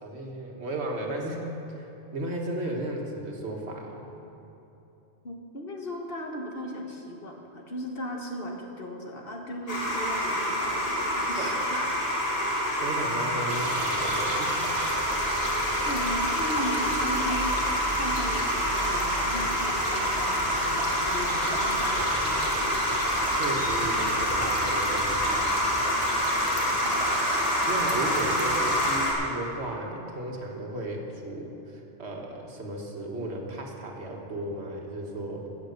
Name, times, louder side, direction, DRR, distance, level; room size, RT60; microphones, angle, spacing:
voice 1, 0.0-4.1 11.4-11.5 12.4-14.6 21.9-22.0 23.3-25.8 27.7-35.5, right 1 dB, 75° right, 0 dB, 1.8 m, -35 dB
voice 2, 5.2-11.9 15.8-17.4 18.0-22.7 26.8-27.2, equal, 60° left, 1 dB, 1.6 m, -37 dB
sound 1, 9.7-29.1, equal, 35° left, 2.6 m, -27 dB
sound 2, 13.5-29.0, right 1 dB, 30° right, 1.7 m, -36 dB
sound 3, 14.8-25.5, right 1 dB, 55° right, 2.5 m, -41 dB
15.0 x 8.2 x 6.6 m, 3.0 s
omnidirectional pair, 1.1 m